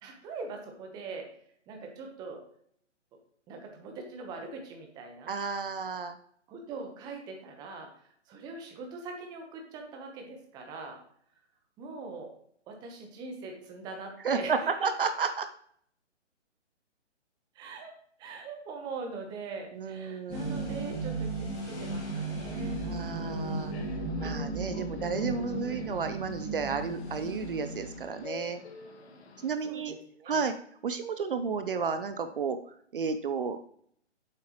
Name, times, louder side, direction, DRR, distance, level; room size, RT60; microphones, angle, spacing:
voice 1, 0.0-1.3 1.7-2.4 3.1-3.2 3.5-5.3 6.5-7.9 8.3-11.0 11.8-12.3 12.7-14.9 17.5-17.9 18.2-22.8 24.8-25.2 29.6-30.4, right 4 dB, 10° right, 3 dB, 1.0 m, -42 dB
voice 2, 5.3-6.1 14.2-15.5 19.7-20.5 22.8-23.7 24.2-28.6 29.4-30.0 30.3-30.5 30.8-32.6 32.9-33.6, right 5 dB, 45° right, 9 dB, 0.7 m, -32 dB
sound 1, 20.3-28.2, right 2 dB, 20° left, 2.1 m, -35 dB
Subway metro underground, 22.9-29.5, left 4 dB, 60° left, 2.0 m, -47 dB
8.9 x 7.5 x 3.0 m, 0.63 s
hypercardioid pair, 150°, 37 cm